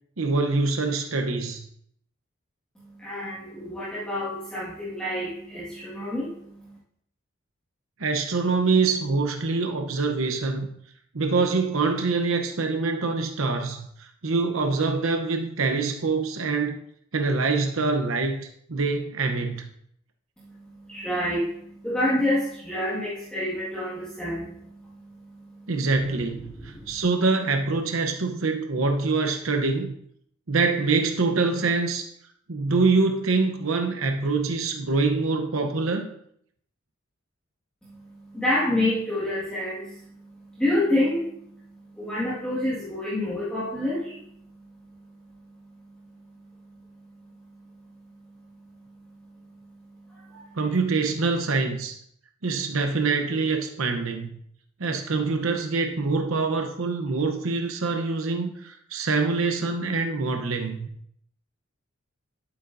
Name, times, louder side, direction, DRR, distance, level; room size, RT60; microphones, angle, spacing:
voice 1, 0.2-1.7 8.0-10.7 11.1-16.7 17.1-19.7 25.7-29.9 30.5-32.1 32.5-36.1 50.5-52.0 52.4-54.3 54.8-60.9, right 3 dB, 85° right, 5 dB, 0.9 m, -25 dB
voice 2, 2.8-6.8 20.4-25.7 26.4-26.9 37.8-46.1 46.4-47.1 47.4-50.6, left 1 dB, 5° left, -10 dB, 1.8 m, -30 dB
11.0 x 8.2 x 2.7 m, 0.68 s
head